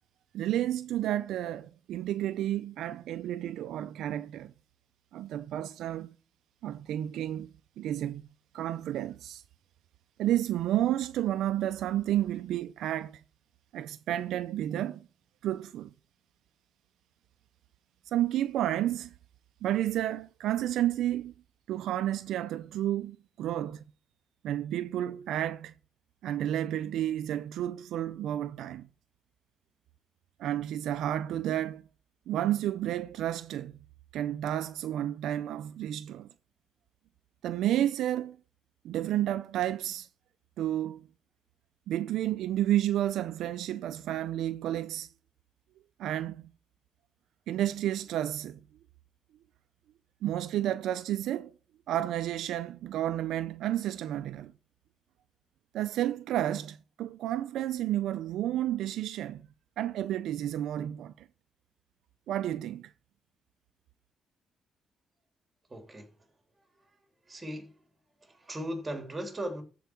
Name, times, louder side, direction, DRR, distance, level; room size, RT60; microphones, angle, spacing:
voice 1, 0.3-4.5 5.1-6.1 6.6-8.3 8.5-9.4 10.2-13.2 13.7-15.1 15.4-15.9 18.1-19.1 19.6-21.3 21.7-23.8 24.4-25.7 26.2-28.9 30.4-31.8 32.3-33.8 34.1-36.3 37.4-38.4 38.8-40.1 40.6-41.0 41.9-45.1 46.0-46.5 47.5-48.6 50.2-51.5 51.9-54.5 55.7-59.5 59.8-61.3 62.3-62.9, right 12 dB, 80° right, 0.4 m, -31 dB
voice 2, 65.7-66.1 67.3-67.8 68.3-69.6, right 1 dB, 20° right, 3.2 m, -37 dB
13.5 x 4.6 x 4.6 m
cardioid pair, 90°, 0 cm